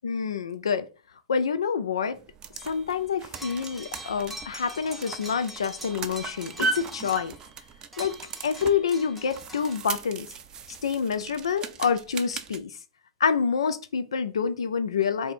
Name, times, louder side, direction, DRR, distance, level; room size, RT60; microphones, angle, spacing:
voice 1, 0.0-0.9 1.3-2.2 2.6-7.3 8.0-8.1 8.4-10.3 10.8-12.8 13.2-15.3, left 6 dB, 75° left, 0.5 m, -27 dB
sound 1, 2.1-12.6, right 4 dB, 25° right, 0.4 m, -37 dB
sound 2, 2.6-3.0 3.3-7.5 7.9-9.8, right 1 dB, ahead, 0.8 m, -44 dB
3.5 x 2.6 x 4.1 m
hypercardioid pair, 110°, 3 cm